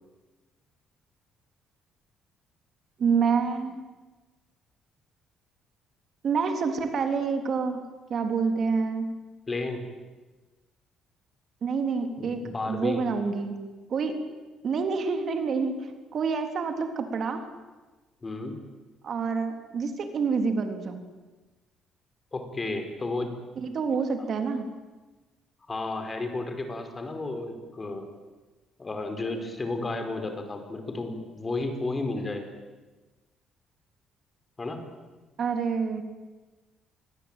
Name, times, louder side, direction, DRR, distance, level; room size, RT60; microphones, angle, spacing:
voice 1, 3.0-3.8 6.2-7.8 8.1-9.1 11.6-13.6 13.9-14.2 14.6-17.4 19.0-21.0 23.6-24.7 35.4-36.0, right 5 dB, 50° right, 6 dB, 3.6 m, -27 dB
voice 2, 9.5-9.9 12.2-13.1 18.2-18.5 22.3-23.4 25.7-28.1 28.8-32.5 34.6-34.8, left 2 dB, 25° left, 6 dB, 5.0 m, -32 dB
27.0 x 22.5 x 9.2 m, 1.2 s
cardioid pair, 105°, 0 cm